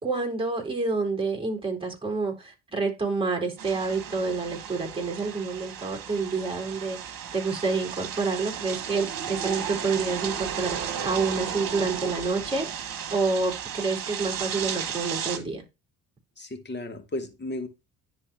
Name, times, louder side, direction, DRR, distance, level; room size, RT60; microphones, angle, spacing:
voice 1, 0.0-15.6, right 4 dB, 10° right, 3.9 m, -28 dB
sound 1, 3.6-15.4, right 8 dB, 55° right, 1.6 m, -34 dB
voice 2, 16.4-17.7, left 1 dB, 25° left, 1.9 m, -34 dB
10.5 x 4.2 x 2.7 m
hypercardioid pair, 60°, 41 cm